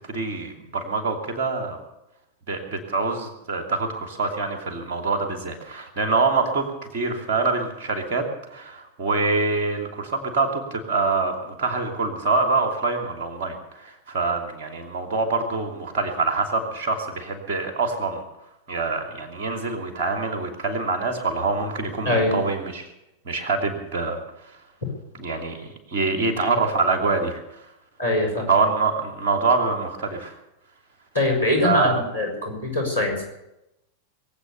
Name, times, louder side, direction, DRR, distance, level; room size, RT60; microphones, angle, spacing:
voice 1, 0.1-1.8 2.5-8.2 8.5-18.2 18.7-22.9 23.2-24.2 25.2-27.4 28.5-30.3 31.6-32.0, right 3 dB, 50° right, 4 dB, 2.8 m, -25 dB
voice 2, 22.0-22.4 28.0-28.5 31.1-33.2, left 2 dB, 80° left, 0 dB, 5.5 m, -23 dB
22.0 x 8.5 x 6.9 m, 0.89 s
figure-of-eight pair, 90°, 0 cm